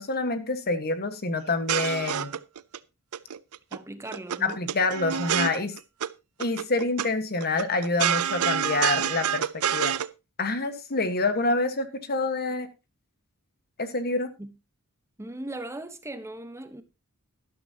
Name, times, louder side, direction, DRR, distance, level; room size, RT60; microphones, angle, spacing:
voice 1, 0.0-2.4 4.4-5.7 6.4-9.9 10.4-12.7 13.8-14.3, left 3 dB, 45° left, 1.4 m, -27 dB
sound 1, 1.5-2.8 3.1-3.8 4.0-6.1 6.4-7.1 7.4-10.1, right 9 dB, 75° right, 0.5 m, -27 dB
voice 2, 3.7-4.6 14.4-14.5 15.2-16.8, right 1 dB, 10° right, 1.0 m, -38 dB
12.5 x 12.0 x 2.9 m
head